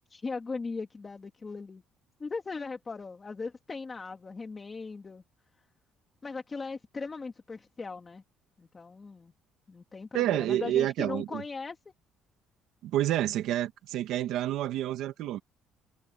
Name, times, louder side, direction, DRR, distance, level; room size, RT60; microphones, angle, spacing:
voice 1, 0.1-1.8 2.2-5.2 6.2-8.2 8.6-9.3 9.7-11.8, left 4 dB, 20° left, 2.2 m, -38 dB
voice 2, 10.1-11.4 12.8-15.4, right 13 dB, 70° right, 1.9 m, -29 dB
cardioid pair, 145°, 0 cm